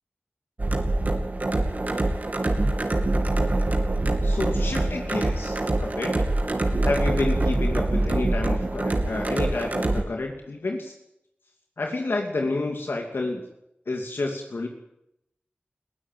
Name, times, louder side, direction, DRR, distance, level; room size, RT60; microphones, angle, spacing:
sound 1, 0.6-10.0, right 2 dB, 45° right, 2.6 m, -24 dB
voice 1, 4.2-6.1 6.8-10.9 11.8-13.4 13.9-14.7, left 2 dB, 80° left, 2 dB, 2.7 m, -29 dB
20.0 x 15.5 x 9.3 m, 0.82 s
wide cardioid pair, 80°, 4 cm